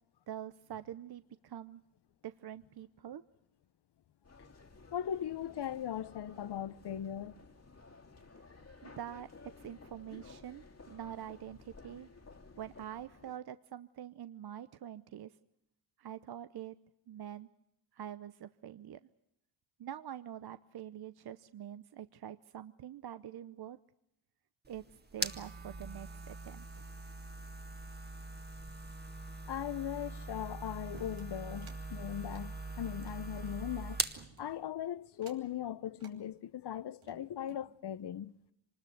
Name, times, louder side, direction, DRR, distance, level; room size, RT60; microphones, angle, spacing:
voice 1, 0.3-1.8 2.2-3.2 8.3-9.3 9.6-12.1 12.6-15.4 16.0-16.8 17.1-17.5 17.9-19.0 19.8-23.8 24.7-24.9 25.1-26.9, right 10 dB, 55° right, 0.8 m, -45 dB
metro leaving, 4.2-13.4, left 3 dB, 35° left, 2.3 m, -56 dB
voice 2, 4.9-7.4 29.5-34.0 34.4-38.3, left 10 dB, 55° left, 1.0 m, -39 dB
sound 1, 24.6-34.2, right 2 dB, 20° right, 1.9 m, -42 dB
sound 2, 30.9-31.8 32.2-33.6 34.2-34.7 35.1-35.6 36.0-36.2 36.8-37.7, right 6 dB, 80° right, 3.0 m, -57 dB
25.0 x 20.5 x 8.0 m
cardioid pair, 70°, 47 cm